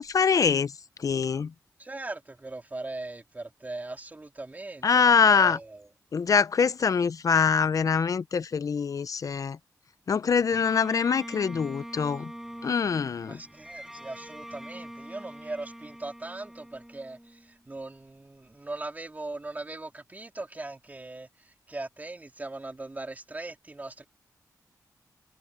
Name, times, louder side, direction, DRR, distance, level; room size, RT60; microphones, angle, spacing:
voice 1, 0.0-1.5 4.8-5.6 6.1-9.6 10.1-12.3 12.6-13.4, left 6 dB, 55° left, 0.5 m, -24 dB
voice 2, 1.8-5.9 13.3-24.0, right 2 dB, 25° right, 3.3 m, -40 dB
Bowed string instrument, 10.5-17.8, equal, 5° right, 6.5 m, -44 dB
cardioid pair, 80°, 7 cm